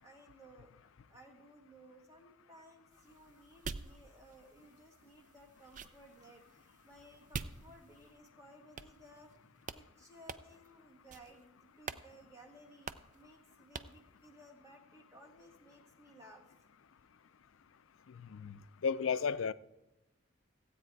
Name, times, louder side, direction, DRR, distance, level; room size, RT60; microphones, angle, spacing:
voice 1, 0.0-16.5, right 1 dB, 15° right, 1.6 m, -59 dB
sound 1, 2.9-8.2 8.8-9.4 9.6-9.8 10.3-10.7 11.1-11.4 11.8-12.1 12.3-12.4 12.9-13.2 13.7-14.0, right 5 dB, 35° right, 0.4 m, -47 dB
voice 2, 18.1-19.5, left 6 dB, 75° left, 0.4 m, -34 dB
15.5 x 8.7 x 4.6 m
head